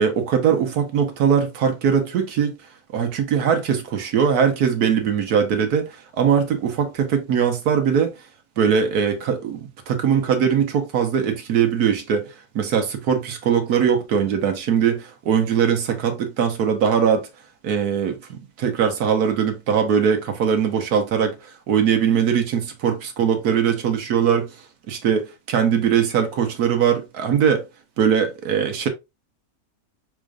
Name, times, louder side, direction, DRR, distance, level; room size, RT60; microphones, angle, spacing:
voice 1, 0.0-2.6 2.9-8.2 8.6-17.3 17.6-21.4 21.7-24.5 24.9-27.6 28.0-28.9, right 7 dB, 80° right, 1.5 m, -21 dB
4.9 x 4.3 x 2.5 m
omnidirectional pair, 1.6 m